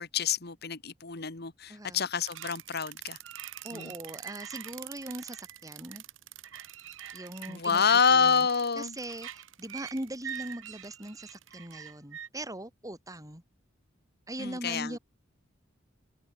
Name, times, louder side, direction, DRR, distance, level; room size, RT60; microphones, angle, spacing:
voice 1, 0.0-3.2 3.7-3.9 7.5-9.0 14.4-15.0, left 6 dB, 60° left, 1.8 m, -27 dB
voice 2, 1.7-2.1 3.6-6.0 7.1-8.5 8.8-13.4 14.3-15.0, right 1 dB, 20° right, 4.6 m, -40 dB
sound 1, 2.2-12.3, right 10 dB, 80° right, 1.1 m, -44 dB
head